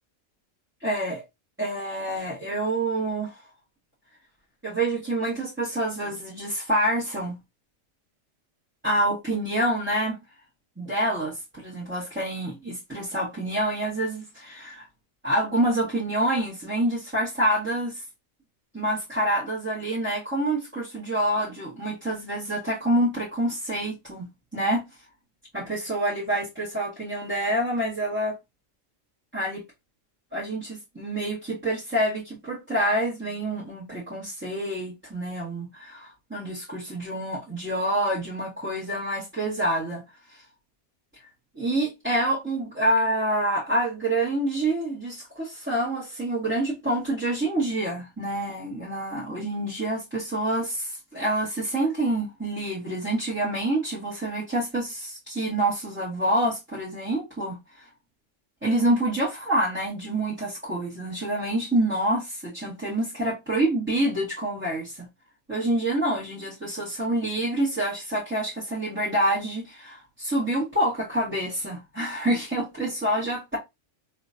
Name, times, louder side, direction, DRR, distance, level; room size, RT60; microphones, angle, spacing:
voice 1, 0.8-1.2 1.6-3.4 4.6-7.4 8.8-10.2 10.8-14.8 15.2-18.0 18.7-24.8 25.5-28.4 29.3-29.6 30.3-40.0 40.3-40.4 41.5-57.9 58.6-65.1 65.5-73.6, right 1 dB, 10° right, 1.6 m, -27 dB
3.4 x 3.0 x 2.6 m
omnidirectional pair, 1.3 m